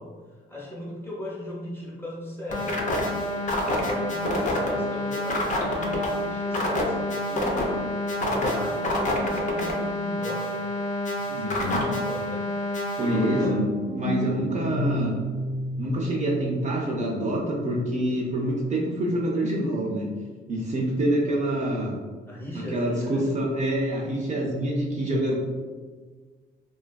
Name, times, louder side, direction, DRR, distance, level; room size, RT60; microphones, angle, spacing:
voice 1, 0.0-2.8 3.6-7.6 8.2-10.7 11.1-12.5 13.0-13.7 21.2-21.7 22.3-23.3, left 1 dB, 10° left, -5 dB, 0.8 m, -38 dB
sound 1, 2.5-13.5, left 1 dB, 40° left, 0.5 m, -27 dB
voice 2, 11.4-11.8 13.0-13.7 13.9-15.1 15.8-20.1 20.5-21.9 22.5-25.4, right 1 dB, 40° right, -4 dB, 0.5 m, -26 dB
sound 2, 13.0-18.8, equal, 85° left, 0.6 m, -32 dB
2.4 x 2.3 x 2.2 m, 1.4 s
cardioid pair, 90°, 20 cm